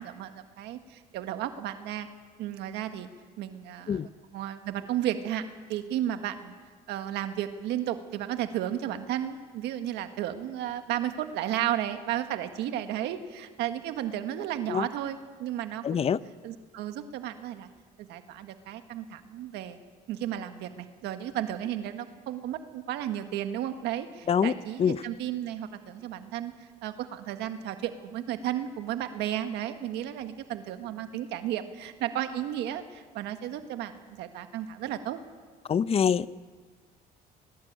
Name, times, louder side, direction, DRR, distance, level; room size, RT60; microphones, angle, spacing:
voice 1, 0.0-2.1 2.4-3.1 3.4-4.0 4.3-5.4 5.7-6.5 6.9-16.0 16.4-17.7 18.0-19.8 20.1-35.2, right 11 dB, 85° right, 1.6 m, -33 dB
voice 2, 15.8-16.2 24.3-25.0 35.7-36.3, left 7 dB, 35° left, 0.7 m, -25 dB
21.0 x 20.0 x 8.9 m
cardioid pair, 110°, 17 cm